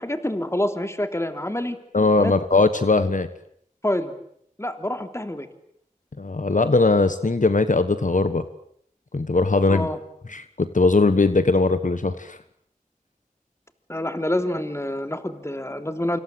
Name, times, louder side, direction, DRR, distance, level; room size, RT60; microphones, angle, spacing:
voice 1, 0.0-1.8 2.2-2.4 3.8-4.1 4.6-5.5 9.7-10.0 13.9-16.2, left 1 dB, 20° left, 8 dB, 3.2 m, -27 dB
voice 2, 1.9-3.3 6.2-8.4 9.1-9.9 10.3-12.4, left 3 dB, 65° left, 11 dB, 1.4 m, -20 dB
28.0 x 26.0 x 7.9 m, 0.68 s
wide cardioid pair, 50°, 14 cm